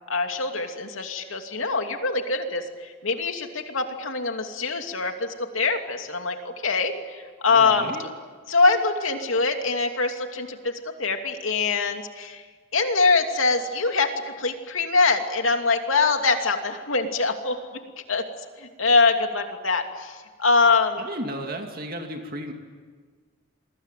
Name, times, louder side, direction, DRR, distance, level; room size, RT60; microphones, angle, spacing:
voice 1, 0.1-7.9 8.5-10.7 11.0-12.4 12.7-14.1 14.4-17.6 18.1-18.2 18.6-21.0, left 4 dB, 85° left, 5 dB, 2.8 m, -23 dB
voice 2, 7.5-8.0 21.0-22.5, right 1 dB, 45° right, 3 dB, 2.6 m, -33 dB
28.0 x 23.0 x 9.2 m, 1.6 s
head